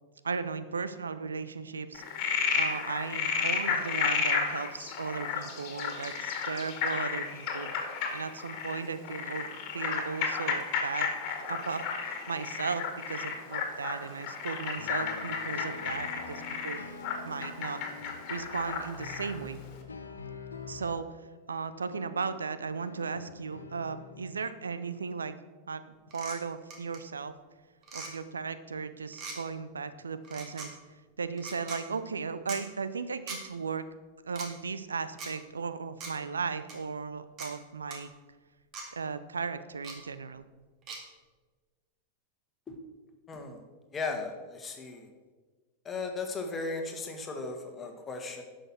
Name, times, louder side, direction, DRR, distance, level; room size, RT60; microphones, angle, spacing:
voice 1, 0.2-2.0 2.5-7.7 8.1-16.8 17.3-19.6 20.7-21.2 21.5-25.4 25.7-25.8 26.1-27.3 27.9-30.7 31.2-33.9 34.2-38.1 38.9-40.4, right 5 dB, 75° right, 13 dB, 0.5 m, -36 dB
Frog, 1.9-19.4, left 6 dB, 40° left, 2.0 m, -33 dB
sound 1, 14.7-24.5, left 4 dB, 75° left, 1.1 m, -46 dB
sound 2, 26.1-26.4 26.7-27.0 27.8-28.1 29.1-29.4 30.2-30.7 31.4-31.8 32.5-32.6 33.3-33.4 34.3-34.5 35.2-35.3 36.0-36.1 36.7-36.8 37.4-37.5 37.9-38.0 38.7-38.9 39.8-40.0 40.9-41.0, right 3 dB, 35° right, 2.2 m, -40 dB
voice 2, 43.3-43.6 43.9-45.1 45.9-48.4, left 3 dB, 20° left, 4 dB, 1.8 m, -36 dB
11.0 x 6.4 x 6.1 m, 1.3 s
figure-of-eight pair, 90°, 0 cm